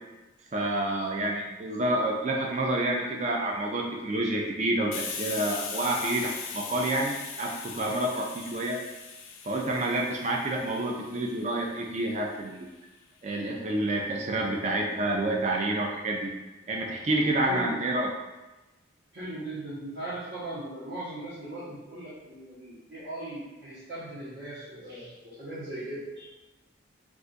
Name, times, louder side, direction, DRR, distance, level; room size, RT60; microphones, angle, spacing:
voice 1, 0.5-8.8 9.4-12.7 13.2-16.3 16.7-18.1, right 1 dB, 35° right, 0 dB, 0.4 m, -28 dB
Hiss, 4.9-12.3, left 5 dB, 85° left, 0.4 m, -40 dB
voice 2, 17.4-17.8 19.1-26.3, right 1 dB, 60° right, -13 dB, 0.9 m, -38 dB
2.5 x 2.3 x 3.8 m, 1.1 s
head